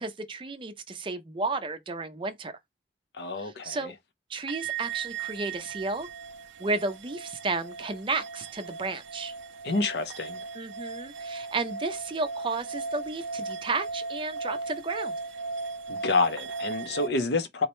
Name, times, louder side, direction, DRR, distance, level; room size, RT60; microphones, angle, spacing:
voice 1, 0.0-2.5 3.4-3.9 4.3-6.1 6.6-9.3 10.5-15.2, right 3 dB, 25° right, 0.5 m, -32 dB
voice 2, 3.2-3.8 9.6-10.4 15.9-17.7, left 3 dB, 60° left, 0.5 m, -28 dB
sound 1, 4.5-17.1, right 4 dB, 85° right, 0.4 m, -37 dB
4.0 x 2.1 x 2.9 m
head